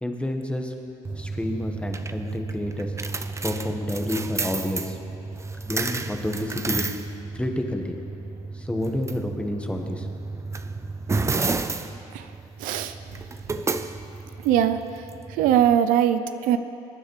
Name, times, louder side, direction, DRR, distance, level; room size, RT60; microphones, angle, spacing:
voice 1, 0.0-0.7 1.2-3.0 3.4-5.0 5.6-6.8 7.3-8.0 8.5-10.1, left 1 dB, 10° left, 3 dB, 1.3 m, -29 dB
sound 1, 1.1-15.8, right 3 dB, 20° right, 0.5 m, -32 dB
voice 2, 12.6-12.9 14.4-14.8 15.3-16.6, right 10 dB, 80° right, 10 dB, 0.5 m, -21 dB
21.5 x 9.9 x 3.2 m, 2.9 s
supercardioid pair, 80°, 14 cm